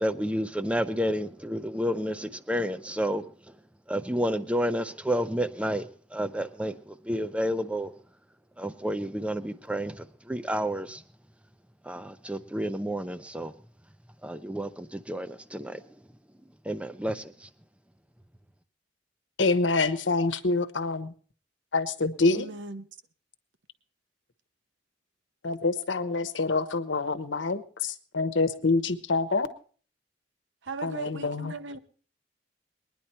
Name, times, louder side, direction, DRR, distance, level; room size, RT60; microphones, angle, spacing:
voice 1, 0.0-3.2 3.9-5.8 6.1-6.7 7.1-7.9 8.6-9.9 10.3-11.0 11.9-13.5 14.2-15.8 16.7-17.2, equal, 5° right, 0.6 m, -30 dB
voice 2, 19.4-21.1 21.7-22.5 25.4-29.5 30.8-31.6, left 3 dB, 85° left, 1.1 m, -26 dB
voice 3, 22.3-22.9 30.7-31.8, right 3 dB, 80° right, 0.9 m, -38 dB
21.5 x 10.0 x 4.4 m
head